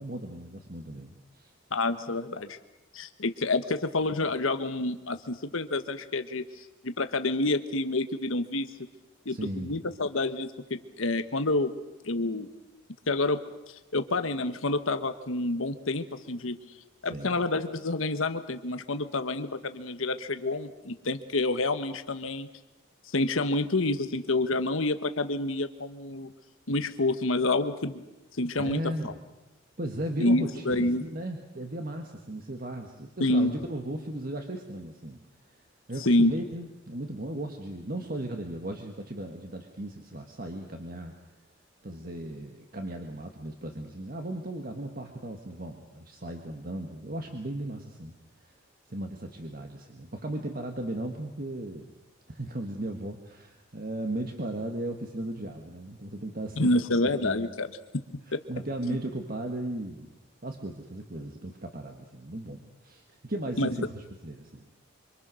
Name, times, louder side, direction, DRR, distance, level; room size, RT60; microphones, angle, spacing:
voice 1, 0.0-1.5 9.3-9.8 17.1-17.4 28.5-29.2 29.8-35.2 35.9-41.1 41.8-48.1 48.4-48.5 48.9-51.9 52.3-57.5 58.5-60.1 60.4-64.6, right 1 dB, 45° right, 4 dB, 1.7 m, -36 dB
voice 2, 1.7-2.6 2.9-8.7 9.2-11.7 12.0-12.5 13.1-13.4 13.9-16.6 17.0-22.5 23.1-26.3 26.7-28.0 28.3-29.1 30.2-31.0 33.2-33.6 36.0-36.3 56.6-57.7 58.9-59.0 63.6-63.8, left 2 dB, 70° left, 9 dB, 1.2 m, -28 dB
25.5 x 25.0 x 6.3 m, 1.0 s
head